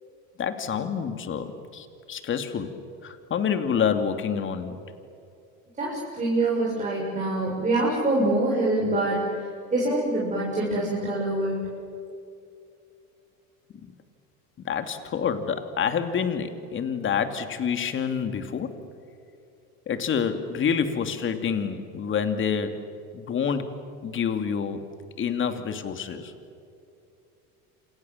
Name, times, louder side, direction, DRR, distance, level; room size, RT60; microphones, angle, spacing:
voice 1, 0.4-2.7 3.0-4.8 13.8-13.9 14.6-18.7 19.9-22.8 23.1-23.7 24.0-24.8 25.2-26.3, left 7 dB, 35° left, 8 dB, 2.8 m, -27 dB
voice 2, 5.8-9.2 9.7-11.6, right 2 dB, 20° right, -4 dB, 7.2 m, -25 dB
28.0 x 27.5 x 7.4 m, 2.6 s
supercardioid pair, 120°, 33 cm